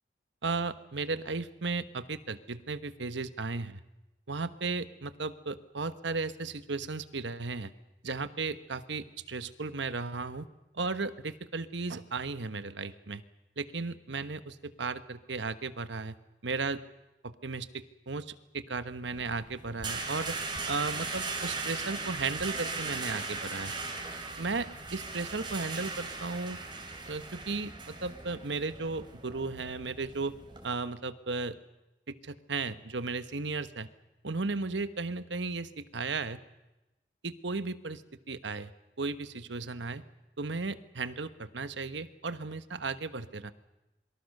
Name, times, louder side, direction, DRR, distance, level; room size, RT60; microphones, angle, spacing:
voice 1, 0.4-3.8 4.3-7.7 8.0-10.5 10.7-13.2 13.6-16.2 16.4-16.8 17.2-20.4 20.7-23.7 24.4-26.6 27.1-30.3 30.6-31.6 32.1-33.9 34.2-36.4 37.2-38.0 38.3-38.7 39.0-40.0 40.4-43.5, right 3 dB, 75° right, 12 dB, 1.2 m, -35 dB
sound 1, 19.0-30.7, right 3 dB, 25° right, 3.4 m, -38 dB
27.0 x 23.5 x 6.6 m, 0.99 s
head